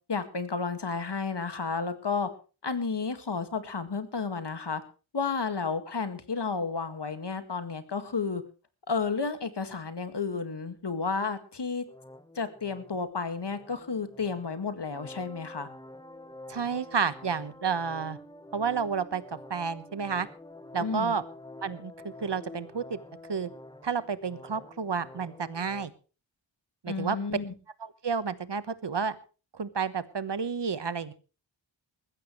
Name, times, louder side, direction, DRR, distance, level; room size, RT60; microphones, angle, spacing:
voice 1, 0.1-2.3 2.6-4.8 5.1-8.4 8.9-11.8 12.4-15.7 20.8-21.1 26.9-27.5, left 4 dB, 55° left, 10 dB, 2.1 m, -32 dB
sound 1, 11.9-25.9, left 1 dB, 10° left, 1.2 m, -48 dB
voice 2, 16.5-18.2 18.5-19.2 19.5-20.3 20.7-21.2 21.6-21.9 22.2-23.0 23.3-23.5 23.8-25.9 26.8-27.2 27.8-29.1 29.5-31.1, right 6 dB, 60° right, 14 dB, 1.3 m, -30 dB
20.5 x 15.0 x 3.2 m, 0.35 s
wide cardioid pair, 80°, 48 cm